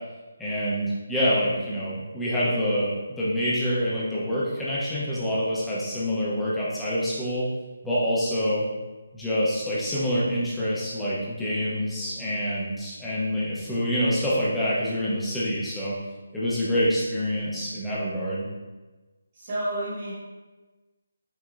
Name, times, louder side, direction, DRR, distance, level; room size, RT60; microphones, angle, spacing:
voice 1, 0.4-7.5 7.8-8.6 9.1-15.9 16.3-18.5, equal, 5° left, -10 dB, 0.6 m, -26 dB
voice 2, 19.3-20.1, right 1 dB, 30° right, -11 dB, 1.2 m, -30 dB
5.9 x 2.7 x 2.4 m, 1.2 s
hypercardioid pair, 175°, 0 cm